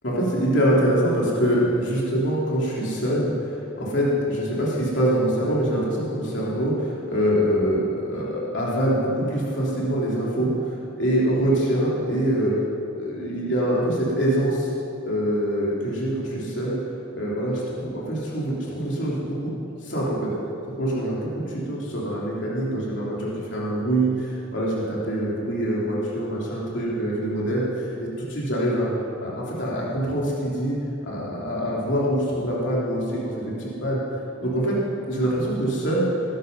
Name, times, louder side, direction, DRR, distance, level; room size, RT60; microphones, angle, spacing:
voice 1, 0.0-12.5 12.9-14.7 15.0-16.8 17.1-19.5 19.8-20.3 20.8-28.9 29.2-30.8 31.0-34.0 34.4-34.8 35.1-36.1, right 1 dB, 60° left, -5 dB, 3.3 m, -24 dB
19.0 x 11.5 x 5.5 m, 2.9 s
head